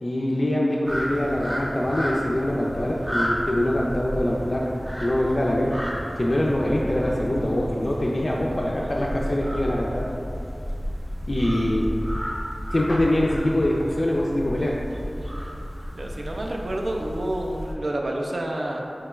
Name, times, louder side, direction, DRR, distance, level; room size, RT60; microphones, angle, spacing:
voice 1, 0.0-4.7 5.0-5.8 6.2-10.0 11.3-11.9 12.7-14.8, left 1 dB, 50° left, -4 dB, 0.3 m, -24 dB
sound 1, 0.8-17.7, equal, 10° right, 0.5 m, -32 dB
voice 2, 15.9-18.8, right 1 dB, 70° right, 0 dB, 0.4 m, -29 dB
4.4 x 2.3 x 3.0 m, 2.7 s
wide cardioid pair, 55°, 0 cm